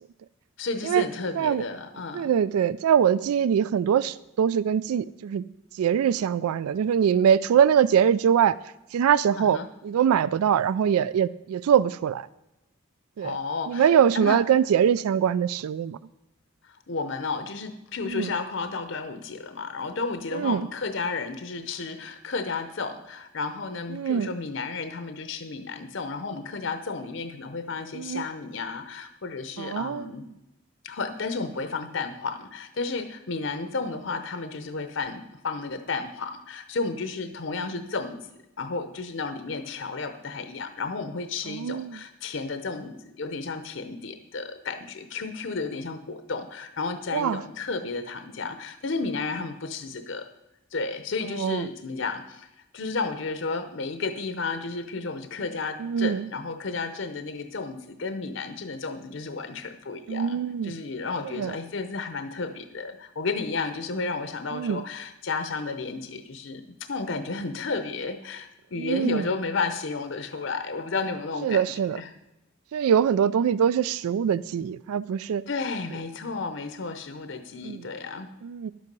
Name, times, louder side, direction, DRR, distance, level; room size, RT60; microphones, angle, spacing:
voice 1, 0.6-2.3 9.4-9.7 13.2-13.9 14.1-14.4 16.6-30.3 30.8-38.2 38.6-50.3 50.7-52.5 52.7-71.6 71.9-72.1 75.5-78.3, left 4 dB, 60° left, 9 dB, 0.7 m, -32 dB
voice 2, 2.1-5.4 5.7-8.5 8.9-12.3 13.2-13.4 13.7-16.0 18.0-18.3 20.3-20.7 23.9-24.3 27.9-28.2 29.6-30.1 41.5-42.0 47.1-47.4 51.3-51.7 55.8-56.3 60.1-60.8 61.3-61.6 64.5-64.8 68.8-69.3 71.4-72.0 72.7-75.4 77.6-77.8 78.4-78.7, right 8 dB, 90° right, 19 dB, 0.3 m, -23 dB
11.5 x 8.2 x 5.2 m, 0.95 s
head